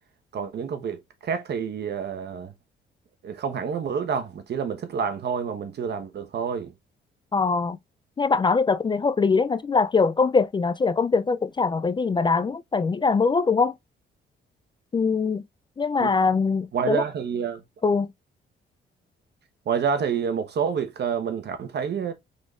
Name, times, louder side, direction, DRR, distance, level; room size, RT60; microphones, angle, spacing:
voice 1, 0.3-2.5 3.2-6.7 16.0-16.1 16.7-17.6 19.7-22.1, right 7 dB, 55° right, 1.1 m, -28 dB
voice 2, 7.3-7.8 8.2-13.7 14.9-15.4 15.8-17.0 17.8-18.1, left 4 dB, 25° left, 0.3 m, -22 dB
5.0 x 4.1 x 2.4 m
cardioid pair, 90°, 20 cm